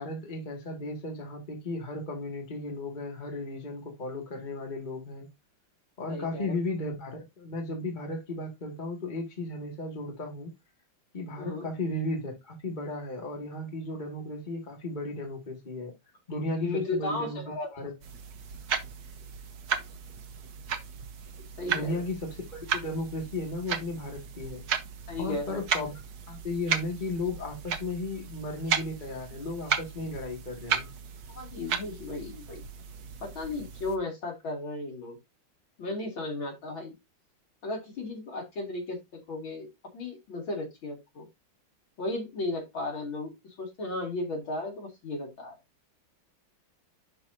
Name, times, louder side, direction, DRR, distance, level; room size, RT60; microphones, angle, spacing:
voice 1, 0.0-5.3 6.0-10.5 11.1-15.9 16.3-17.4 17.7-17.9 21.7-24.6 25.2-25.9 26.3-30.9, left 2 dB, 25° left, 2.1 m, -35 dB
voice 2, 6.1-6.6 11.4-11.7 16.5-17.7 21.6-22.1 25.1-25.6 31.3-32.6 33.2-35.2 35.8-36.9 37.6-39.7 39.9-41.3 42.0-43.3 43.6-45.6, left 2 dB, 75° left, 3.5 m, -35 dB
sound 1, 18.0-34.0, right 7 dB, 55° right, 1.4 m, -35 dB
11.0 x 4.7 x 2.7 m
omnidirectional pair, 2.2 m